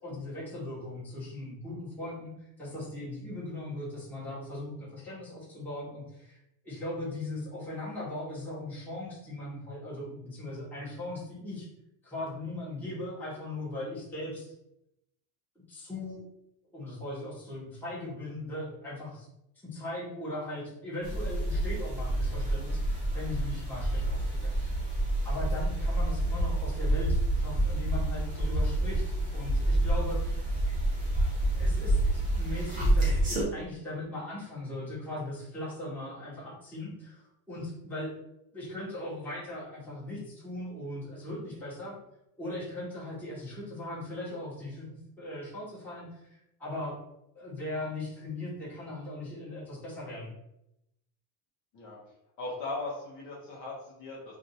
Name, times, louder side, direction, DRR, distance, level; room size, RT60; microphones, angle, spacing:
voice 1, 0.0-6.4 6.6-11.7 12.0-14.5 15.5-16.2 16.7-19.3 19.6-24.8 25.2-30.5 31.5-38.1 38.5-42.0 42.4-47.0 47.3-50.3, left 1 dB, 5° left, -9 dB, 0.9 m, -39 dB
sound 1, 21.0-33.4, right 1 dB, 20° right, 0.6 m, -28 dB
voice 2, 52.4-54.4, left 2 dB, 35° left, -5 dB, 0.8 m, -38 dB
2.6 x 2.5 x 4.1 m, 0.84 s
cardioid pair, 165°, 49 cm